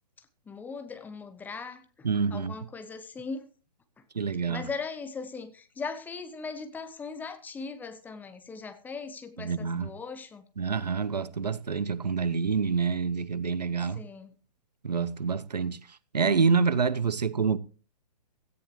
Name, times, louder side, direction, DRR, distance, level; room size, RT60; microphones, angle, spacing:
voice 1, 0.5-3.5 4.5-10.4 13.9-14.3, left 4 dB, 10° left, 0.9 m, -39 dB
voice 2, 2.0-2.5 4.1-4.6 9.4-9.9 10.6-14.0 14.8-15.8 16.1-17.6, right 5 dB, 75° right, 0.9 m, -27 dB
17.0 x 13.5 x 3.2 m
figure-of-eight pair, 125°, 21 cm